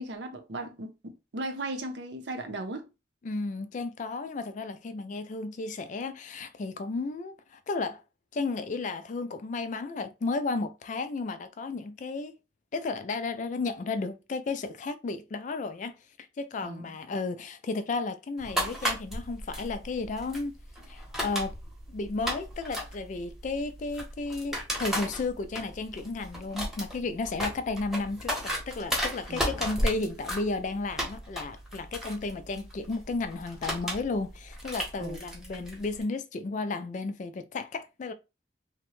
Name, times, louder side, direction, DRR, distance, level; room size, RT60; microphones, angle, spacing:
voice 1, 0.0-2.9 16.6-17.0 29.3-29.7 35.0-35.2, right 2 dB, 70° right, 0.6 m, -37 dB
voice 2, 3.2-8.0 8.3-12.4 12.7-16.0 16.4-20.5 20.9-21.6 21.9-38.1, left 3 dB, 40° left, 0.3 m, -33 dB
sound 1, 18.4-36.0, equal, ahead, 0.9 m, -35 dB
2.8 x 2.1 x 3.0 m
head